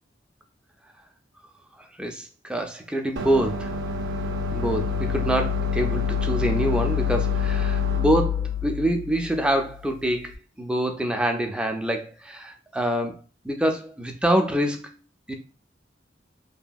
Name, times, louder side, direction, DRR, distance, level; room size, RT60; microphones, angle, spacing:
voice 1, 1.8-3.7 4.5-15.0 15.3-15.4, right 1 dB, 5° right, 4 dB, 0.3 m, -26 dB
sound 1, 3.2-10.2, left 6 dB, 80° right, 0.5 m, -27 dB
2.7 x 2.6 x 2.2 m, 0.32 s
head